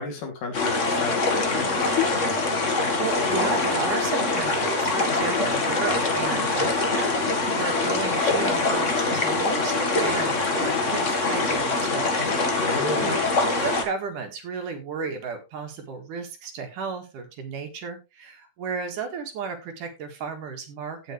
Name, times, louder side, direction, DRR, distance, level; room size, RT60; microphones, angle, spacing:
voice 1, 0.0-1.9 12.6-13.2, left 3 dB, 70° left, 2 dB, 4.2 m, -32 dB
sound 1, 0.5-13.8, left 3 dB, 45° left, 0.9 m, -24 dB
voice 2, 2.7-12.3 12.6-13.2 13.6-21.1, right 5 dB, 65° right, 5 dB, 3.2 m, -33 dB
16.5 x 5.9 x 3.3 m, 0.25 s
omnidirectional pair, 4.0 m